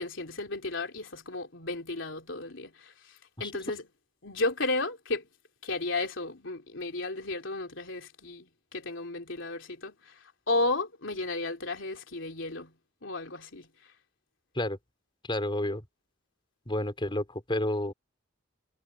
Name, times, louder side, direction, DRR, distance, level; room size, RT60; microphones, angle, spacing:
voice 1, 0.0-2.9 3.4-3.8 4.2-5.3 5.6-10.2 10.5-12.7 13.0-13.7, left 2 dB, 70° left, 3.7 m, -33 dB
voice 2, 15.3-15.8 16.7-17.9, left 1 dB, 25° left, 4.0 m, -30 dB
head